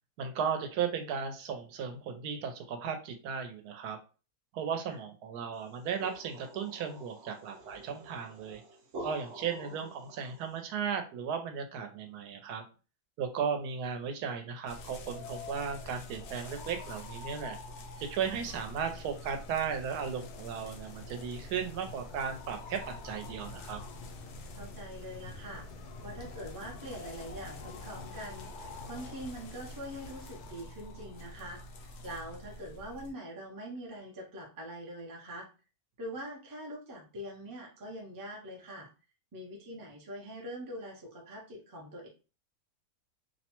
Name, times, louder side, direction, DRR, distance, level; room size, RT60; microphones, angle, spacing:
voice 1, 0.2-4.0 4.5-8.6 9.0-12.6 13.2-17.6 18.0-22.8 23.0-23.8, right 7 dB, 85° right, 6 dB, 1.1 m, -35 dB
sound 1, 5.6-10.6, right 1 dB, 65° right, 0.8 m, -48 dB
sound 2, 14.7-33.1, left 2 dB, 65° left, 0.7 m, -47 dB
sound 3, 18.2-30.5, left 4 dB, 85° left, 1.1 m, -51 dB
voice 2, 24.6-25.6 26.0-31.6 32.0-35.5 36.0-38.9 39.3-42.1, equal, 30° right, -1 dB, 0.3 m, -43 dB
2.8 x 2.1 x 2.9 m, 0.33 s
omnidirectional pair, 1.6 m